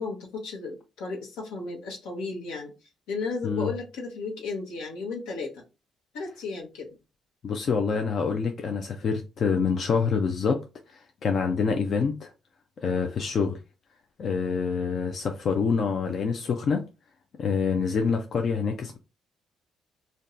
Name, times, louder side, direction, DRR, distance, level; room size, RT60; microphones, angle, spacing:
voice 1, 0.0-2.7 3.1-5.6 6.1-6.9, left 4 dB, 90° left, 1.0 m, -34 dB
voice 2, 7.4-10.6 10.9-12.3 12.8-13.6 14.2-16.8 17.4-19.0, left 5 dB, 55° left, 0.4 m, -26 dB
2.6 x 2.2 x 3.6 m
supercardioid pair, 65°, 0 cm